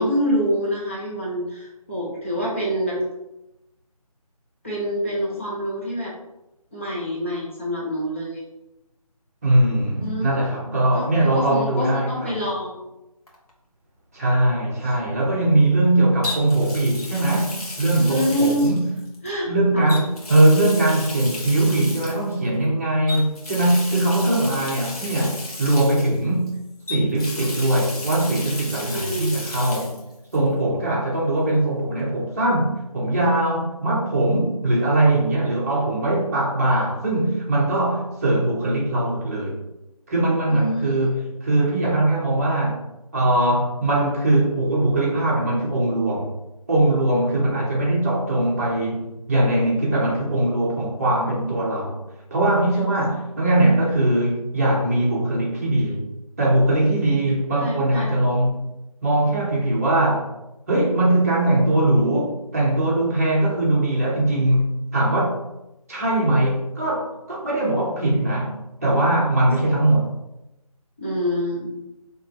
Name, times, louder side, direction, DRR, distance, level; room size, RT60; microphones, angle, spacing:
voice 1, 0.0-3.0 4.6-6.1 6.7-8.5 10.0-10.3 10.7-12.9 14.8-15.0 17.9-18.7 19.2-19.5 19.7-19.9 24.2-24.3 28.8-29.3 40.5-41.2 57.5-58.1 71.0-71.8, equal, 20° left, -7 dB, 0.7 m, -26 dB
voice 2, 9.4-12.4 14.1-18.9 19.4-26.5 26.9-30.0 30.3-39.6 40.1-42.8 43.1-46.3 46.7-52.0 52.3-56.0 56.4-58.7 59.0-60.3 60.7-65.4 65.9-70.1, right 1 dB, 25° right, -5 dB, 1.0 m, -21 dB
Water tap faucet, 13.3-13.5 16.2-19.3 19.9-22.3 23.1-26.5 26.9-30.0 30.3-30.4 32.0-32.1, left 2 dB, 75° left, 1.5 m, -34 dB
5.6 x 3.1 x 2.9 m, 0.93 s
figure-of-eight pair, 170°, 19 cm